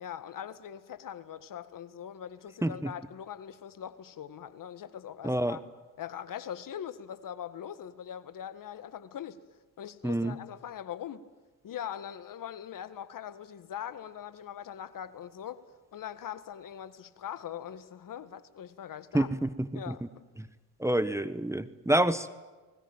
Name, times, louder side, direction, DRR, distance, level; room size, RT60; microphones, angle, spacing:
voice 1, 0.0-5.6 6.0-9.4 9.8-11.3 11.6-15.6 15.9-19.3 19.7-20.0, left 9 dB, 50° left, 1.8 m, -41 dB
voice 2, 2.6-2.9 5.2-5.6 10.0-10.4 19.1-20.0 20.4-20.5 20.8-22.3, right 1 dB, 5° right, 1.3 m, -28 dB
29.5 x 20.5 x 9.0 m
hypercardioid pair, 60°, 41 cm